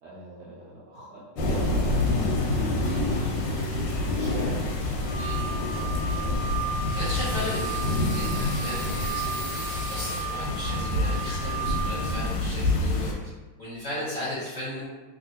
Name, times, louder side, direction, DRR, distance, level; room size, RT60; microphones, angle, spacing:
voice 1, 0.0-3.1 3.4-5.0, right 2 dB, 75° right, -6 dB, 1.0 m, -37 dB
sound 1, 1.4-13.1, left 2 dB, 85° left, 1.4 m, -27 dB
sound 2, 5.1-12.2, right 4 dB, 65° left, 1.1 m, -35 dB
voice 2, 5.1-5.5 7.0-7.8 8.1-9.6 9.9-13.1 13.6-14.9, left 1 dB, 45° left, -10 dB, 0.9 m, -35 dB
sound 3, 6.8-10.2, right 1 dB, 50° right, 1.1 m, -39 dB
3.2 x 2.6 x 2.7 m, 1.2 s
omnidirectional pair, 2.3 m